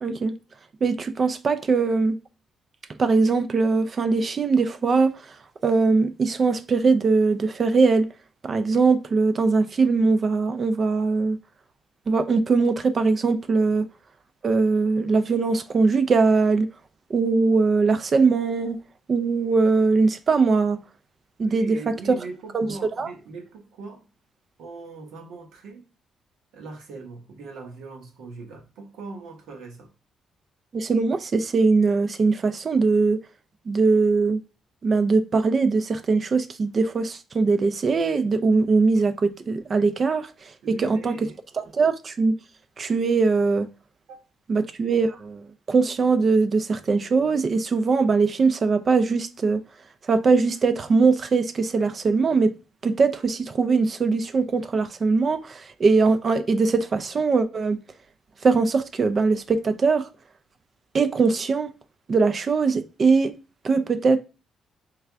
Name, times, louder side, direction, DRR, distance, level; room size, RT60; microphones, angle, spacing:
voice 1, 0.0-0.3 0.8-2.1 3.0-5.4 5.6-8.1 8.4-11.4 12.1-13.8 14.4-16.7 17.1-18.8 19.1-20.8 21.4-21.9 22.5-22.7 23.0-23.1 30.7-33.2 33.7-34.4 34.8-41.1 41.5-42.3 42.8-43.7 44.5-49.6 50.1-52.5 52.8-57.8 58.4-60.1 60.9-61.7 62.1-63.3 63.6-64.2, right 4 dB, 45° right, 0.3 m, -21 dB
voice 2, 21.4-24.0 24.6-25.8 26.5-29.9 40.6-41.3 44.1-44.2, right 4 dB, 80° right, 0.9 m, -40 dB
3.3 x 2.4 x 3.3 m
cardioid pair, 90°, 0 cm